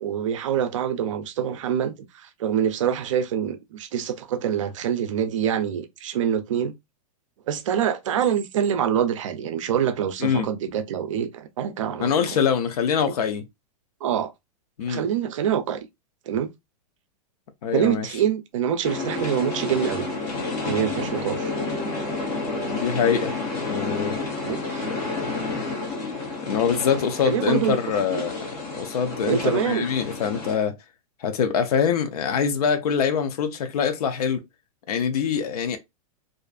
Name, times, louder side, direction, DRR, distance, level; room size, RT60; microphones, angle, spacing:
voice 1, 0.0-6.7 7.5-12.4 14.0-14.3 14.9-15.9 16.3-16.5 17.7-20.1 20.6-21.5 24.4-24.9 27.2-27.8 28.1-28.2 29.2-29.9, right 9 dB, 55° right, 0.4 m, -25 dB
voice 2, 12.0-13.5 14.8-15.0 17.6-18.1 22.7-23.3 23.7-24.2 24.8-24.9 26.4-28.4 28.7-30.7 31.2-34.4 34.9-35.8, left 7 dB, 75° left, 0.5 m, -24 dB
sound 1, 18.8-30.6, left 3 dB, 20° left, 0.6 m, -30 dB
2.5 x 2.4 x 2.3 m
supercardioid pair, 175°, 20 cm